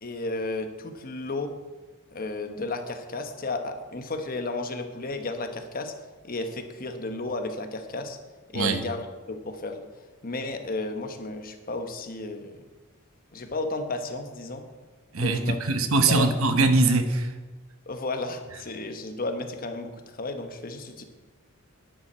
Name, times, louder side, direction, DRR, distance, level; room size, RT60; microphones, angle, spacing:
voice 1, 0.0-1.5 2.1-5.9 6.2-8.2 8.5-9.8 10.2-12.6 13.3-14.6 15.2-15.6 16.1-16.3 17.9-21.0, left 2 dB, 40° left, 7 dB, 1.1 m, -33 dB
voice 2, 15.1-17.3, right 3 dB, 75° right, 8 dB, 1.1 m, -22 dB
11.0 x 10.5 x 4.3 m, 1.2 s
head